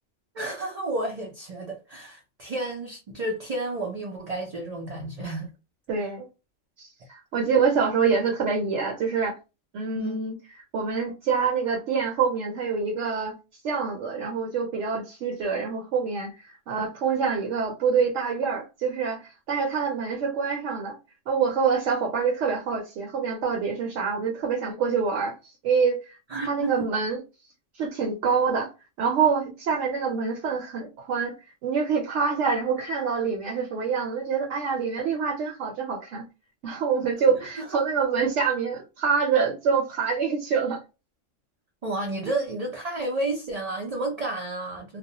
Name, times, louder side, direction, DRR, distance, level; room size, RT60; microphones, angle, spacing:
voice 1, 0.3-5.5 10.0-10.2 26.3-26.9 37.6-37.8 41.8-45.0, right 2 dB, 50° right, 0.4 m, -31 dB
voice 2, 5.9-6.2 6.8-9.4 9.7-10.4 10.7-13.3 13.6-20.9 21.3-26.0 26.4-27.2 27.7-28.7 29.0-31.3 31.6-36.2 36.6-40.8, right 5 dB, 70° right, 0.9 m, -26 dB
2.3 x 2.0 x 2.7 m
omnidirectional pair, 1.3 m